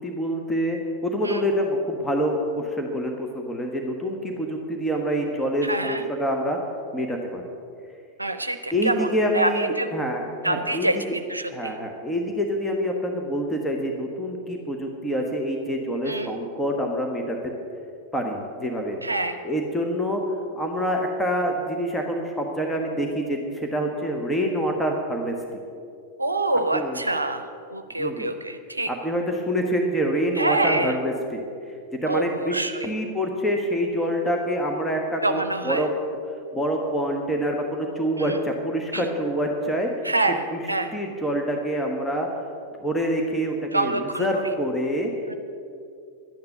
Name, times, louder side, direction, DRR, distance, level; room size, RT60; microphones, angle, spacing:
voice 1, 0.0-6.6 6.9-7.4 8.7-11.0 11.5-17.4 18.1-19.0 19.4-25.3 26.7-27.1 28.0-28.3 28.9-31.4 32.0-35.9 36.5-39.9 40.5-40.6 40.9-42.3 42.8-45.1, equal, 10° left, 1 dB, 1.4 m, -26 dB
voice 2, 5.6-6.0 8.2-9.1 9.3-9.9 10.4-11.7 16.1-16.3 19.0-19.4 26.2-27.4 27.7-28.9 30.4-30.9 32.1-32.9 35.2-35.8 38.2-38.4 38.9-39.0 40.0-40.4 40.7-40.9 43.7-44.3, right 2 dB, 85° right, 8 dB, 0.6 m, -26 dB
12.0 x 9.5 x 7.9 m, 2.5 s
figure-of-eight pair, 90°, 0 cm